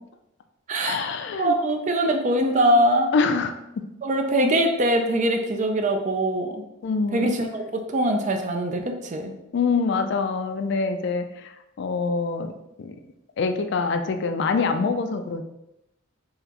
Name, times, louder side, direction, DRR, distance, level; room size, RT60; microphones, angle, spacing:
voice 1, 0.8-1.5 3.1-3.9 6.8-7.3 9.5-11.5 11.8-12.5 12.8-13.0 13.4-15.4, left 4 dB, 60° left, 7 dB, 0.3 m, -25 dB
voice 2, 1.4-3.1 4.0-6.6 7.1-9.3, right 1 dB, 35° right, 4 dB, 0.4 m, -22 dB
3.9 x 2.9 x 2.9 m, 0.88 s
head